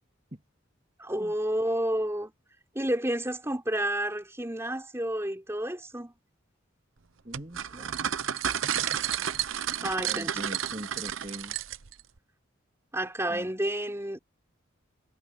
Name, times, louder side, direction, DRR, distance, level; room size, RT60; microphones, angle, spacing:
voice 1, 1.0-2.3 2.7-6.1 9.8-10.3 12.9-14.2, right 1 dB, 15° right, 4.2 m, -30 dB
voice 2, 7.2-8.1 10.0-11.6 13.3-13.5, right 1 dB, 30° right, 2.7 m, -42 dB
sound 1, 7.3-12.0, right 9 dB, 80° right, 0.8 m, -31 dB
head